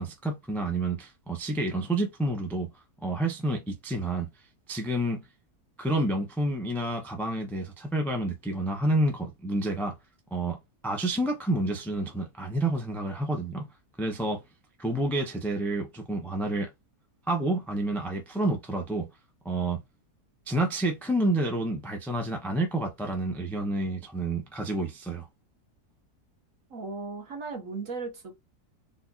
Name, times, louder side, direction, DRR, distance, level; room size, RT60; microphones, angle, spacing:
voice 1, 0.0-2.7 3.0-4.3 4.7-5.3 5.8-10.0 10.3-10.6 10.8-13.7 14.0-14.4 14.8-16.7 17.3-19.1 19.4-19.8 20.5-25.3, right 1 dB, ahead, 0.5 m, -29 dB
voice 2, 26.7-28.3, right 4 dB, 55° right, 1.7 m, -36 dB
4.1 x 2.9 x 2.4 m
omnidirectional pair, 1.7 m